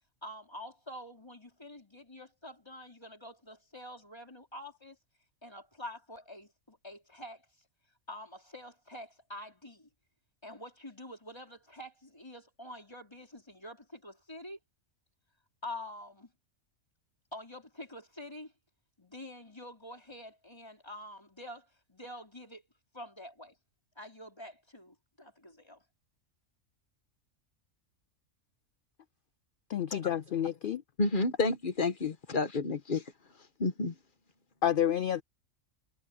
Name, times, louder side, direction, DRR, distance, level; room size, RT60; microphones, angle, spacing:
voice 1, 0.2-5.0 5.4-7.4 8.1-9.9 10.4-14.6 15.6-16.3 17.3-18.5 19.0-22.6 22.9-23.5 24.0-25.8, left 1 dB, 20° left, 4.3 m, -47 dB
voice 2, 29.7-30.8 34.6-35.2, left 10 dB, 70° left, 0.5 m, -29 dB
voice 3, 31.0-33.0 33.6-33.9, left 3 dB, 40° left, 1.5 m, -30 dB
omnidirectional pair, 1.4 m